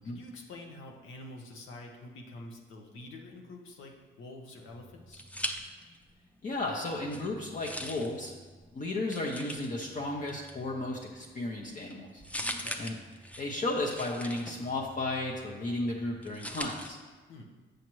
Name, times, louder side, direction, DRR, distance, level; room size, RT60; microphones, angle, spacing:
voice 1, 0.0-5.2 12.4-12.8 17.3-17.5, left 2 dB, 85° left, 1 dB, 1.0 m, -47 dB
sound 1, 4.7-6.2 6.5-16.9, equal, 5° left, 0.6 m, -43 dB
voice 2, 6.4-8.3 8.7-12.2 12.8-13.0 13.4-17.0, left 2 dB, 40° left, -2 dB, 0.8 m, -34 dB
7.2 x 6.4 x 3.1 m, 1.3 s
cardioid pair, 90°, 20 cm